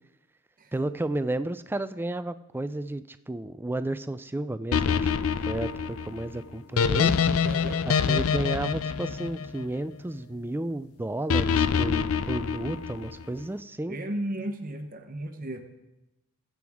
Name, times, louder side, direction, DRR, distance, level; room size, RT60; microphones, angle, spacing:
voice 1, 0.7-7.1 7.9-14.0, right 1 dB, 10° right, 12 dB, 0.3 m, -32 dB
sound 1, 4.7-10.0 11.3-13.2, left 6 dB, 65° left, 0.4 m, -26 dB
voice 2, 7.4-7.8 13.9-15.6, right 1 dB, 40° right, 5 dB, 0.9 m, -34 dB
20.5 x 7.8 x 3.6 m, 1.0 s
head